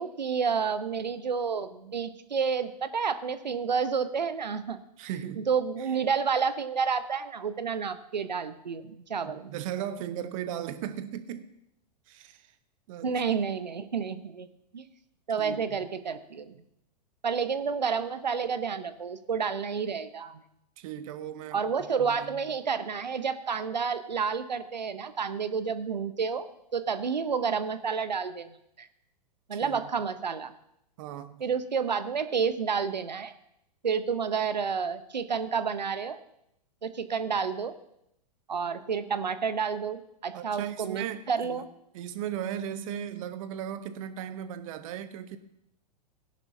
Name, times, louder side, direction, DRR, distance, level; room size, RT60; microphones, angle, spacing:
voice 1, 0.0-4.8 5.4-9.5 13.0-14.5 14.7-14.8 15.3-16.6 17.2-20.4 21.5-26.5 26.7-28.5 28.8-28.9 29.5-30.5 31.4-33.3 33.8-36.2 36.8-37.7 38.5-41.7, right 6 dB, 90° right, 12 dB, 0.8 m, -30 dB
voice 2, 5.0-5.5 5.8-5.9 9.2-11.5 12.1-12.5 12.9-13.2 15.4-15.9 20.8-22.5 29.5-29.9 31.0-31.4 40.3-41.6 41.9-45.4, right 10 dB, 50° right, 11 dB, 1.0 m, -37 dB
17.0 x 10.5 x 2.7 m, 0.78 s
hypercardioid pair, 105°, 21 cm